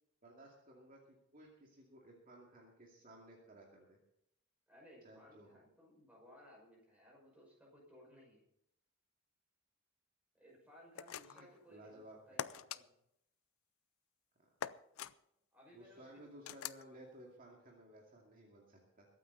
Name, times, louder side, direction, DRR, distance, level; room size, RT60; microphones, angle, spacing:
voice 1, 0.2-1.0 1.3-4.0 5.0-5.6 11.3-12.7 15.7-19.1, right 1 dB, 40° right, -2 dB, 2.4 m, -58 dB
voice 2, 4.7-8.4 10.3-12.9 15.5-16.2, equal, 5° right, -3 dB, 5.7 m, -61 dB
sound 1, 10.9-11.5 12.4-12.8 14.6-15.1 16.4-16.8, left 9 dB, 80° left, 0.5 m, -43 dB
22.0 x 9.2 x 4.0 m, 0.77 s
head